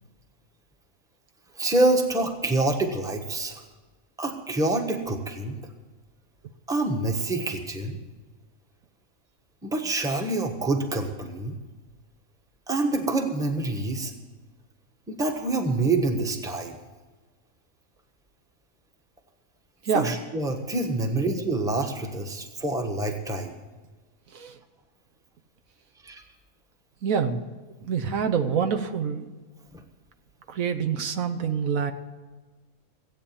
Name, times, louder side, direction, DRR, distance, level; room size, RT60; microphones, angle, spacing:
voice 1, 1.6-3.6 4.2-5.6 6.7-8.0 9.6-11.6 12.7-14.1 15.1-16.8 19.9-23.5 26.0-26.2 29.7-29.8, right 2 dB, 5° right, 4 dB, 1.1 m, -26 dB
voice 2, 27.0-27.4 27.8-29.2 30.5-31.9, right 6 dB, 70° right, 6 dB, 1.3 m, -26 dB
16.5 x 8.6 x 7.1 m, 1.3 s
omnidirectional pair, 1.5 m